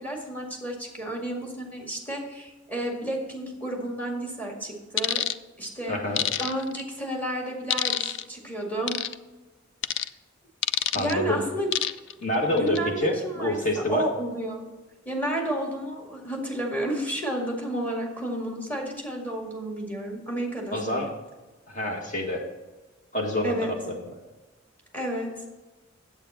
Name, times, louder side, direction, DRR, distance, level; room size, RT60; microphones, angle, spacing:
voice 1, 0.0-5.2 5.6-6.0 6.4-9.0 11.0-11.7 12.5-13.6 13.9-14.7 15.1-21.0 23.4-23.7 24.9-25.3, right 1 dB, 10° left, 0 dB, 2.0 m, -31 dB
sound 1, 5.0-5.4 6.2-6.8 7.7-8.2 8.9-9.1 9.8-10.1 10.6-11.1 11.7-12.1 12.6-12.8, left 11 dB, 60° left, 0.4 m, -26 dB
voice 2, 5.9-6.2 10.9-11.4 12.2-14.0 20.7-21.1 21.7-22.4 23.1-24.0, left 1 dB, 40° left, 0 dB, 1.9 m, -27 dB
8.8 x 8.1 x 4.3 m, 1.2 s
head